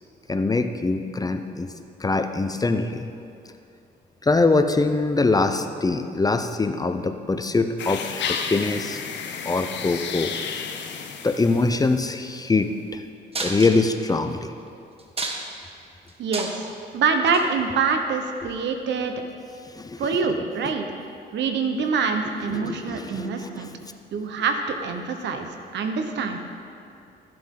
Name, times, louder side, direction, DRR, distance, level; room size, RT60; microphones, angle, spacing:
voice 1, 0.3-1.7 2.0-3.1 4.2-9.0 9.4-10.3 11.2-13.0 13.4-14.5 19.8-20.0 20.6-20.7 22.5-23.8, left 3 dB, 20° left, 8 dB, 0.5 m, -23 dB
sound 1, 7.8-12.1, left 6 dB, 75° left, 0.8 m, -32 dB
sound 2, 13.3-14.1 14.6-14.7 15.0-15.7 16.1-16.7 17.3-17.4 18.4-18.5, right 3 dB, 30° right, 1.2 m, -31 dB
voice 2, 16.2-16.7 16.9-19.1 20.0-20.9 21.3-23.7 24.1-25.5 25.7-26.4, right 5 dB, 70° right, 6 dB, 1.0 m, -25 dB
14.0 x 7.6 x 3.8 m, 2.5 s
cardioid pair, 90°, 19 cm